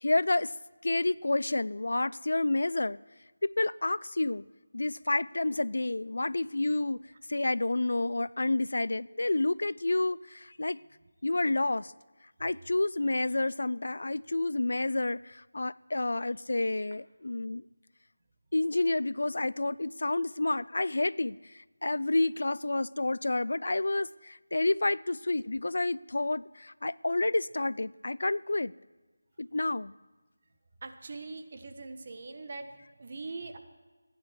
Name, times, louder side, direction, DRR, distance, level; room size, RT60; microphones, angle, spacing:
voice 1, 0.0-0.5 0.8-3.0 3.4-4.4 4.7-10.8 11.2-11.9 12.4-17.6 18.5-28.7 29.4-29.9, left 2 dB, 65° left, 20 dB, 0.4 m, -29 dB
voice 2, 30.8-32.7 33.0-33.6, right 3 dB, 40° right, 6 dB, 1.4 m, -41 dB
28.0 x 10.5 x 4.7 m, 1.3 s
figure-of-eight pair, 165°, 0 cm